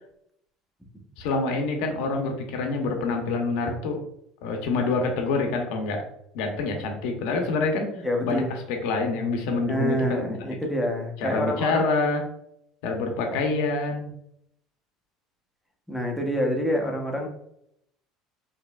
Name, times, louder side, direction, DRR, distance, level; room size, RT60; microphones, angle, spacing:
voice 1, 1.2-4.0 4.4-6.0 6.3-10.3 11.2-12.2 12.8-14.1, left 3 dB, 80° left, 3 dB, 0.7 m, -26 dB
voice 2, 8.0-8.5 9.7-11.8 15.9-17.3, equal, ahead, 0 dB, 0.7 m, -27 dB
4.8 x 2.9 x 2.3 m, 0.74 s
cardioid pair, 150°, 0 cm